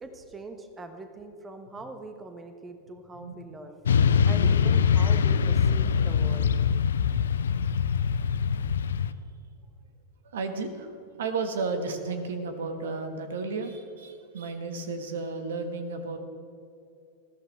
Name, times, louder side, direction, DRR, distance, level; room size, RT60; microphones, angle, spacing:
voice 1, 0.0-3.8 4.3-6.5, right 2 dB, 15° right, 7 dB, 1.2 m, -42 dB
voice 2, 3.1-3.4 10.2-10.9 11.2-16.2, right 4 dB, 60° right, 7 dB, 1.5 m, -33 dB
Motorcycle / Traffic noise roadway noise, 3.9-9.1, left 7 dB, 65° left, 0.6 m, -23 dB
20.5 x 14.5 x 3.4 m, 2.7 s
figure-of-eight pair, 90°, 0 cm